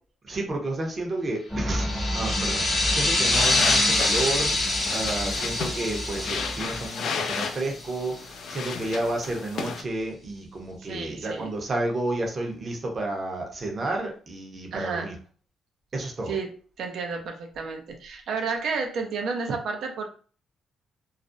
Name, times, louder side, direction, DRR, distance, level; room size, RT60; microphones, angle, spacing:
voice 1, 0.2-15.1 15.9-16.4, right 2 dB, 40° right, 1 dB, 0.7 m, -31 dB
sound 1, 1.5-6.9, equal, ahead, 0.7 m, -33 dB
sound 2, 1.7-8.0, left 2 dB, 40° left, 0.7 m, -26 dB
sound 3, 3.3-9.8, left 5 dB, 70° left, 0.4 m, -33 dB
voice 2, 10.8-11.5 14.7-15.1 16.3-20.1, right 4 dB, 70° right, 4 dB, 0.5 m, -31 dB
2.4 x 2.0 x 2.5 m, 0.41 s
cardioid pair, 90°, 0 cm